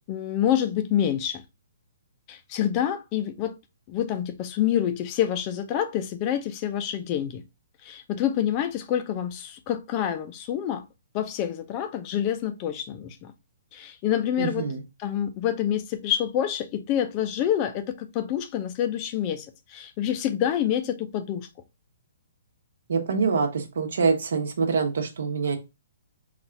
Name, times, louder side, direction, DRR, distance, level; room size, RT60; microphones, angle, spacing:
voice 1, 0.1-1.4 2.3-3.5 3.9-7.4 7.8-10.8 11.1-13.3 13.7-14.6 15.0-21.5, left 10 dB, 25° left, 0.5 m, -27 dB
voice 2, 14.4-14.8 22.9-25.6, right 5 dB, 70° right, 1.0 m, -25 dB
4.1 x 2.5 x 4.4 m
hypercardioid pair, 165°, 0 cm